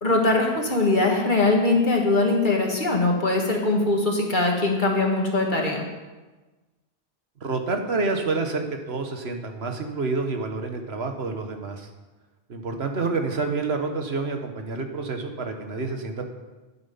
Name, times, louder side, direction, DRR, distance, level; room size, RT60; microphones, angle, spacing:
voice 1, 0.0-5.9, left 2 dB, 50° left, 0 dB, 2.2 m, -21 dB
voice 2, 7.4-11.9 12.5-16.3, right 3 dB, 75° right, 5 dB, 1.5 m, -28 dB
12.0 x 9.5 x 5.7 m, 1.2 s
omnidirectional pair, 1.1 m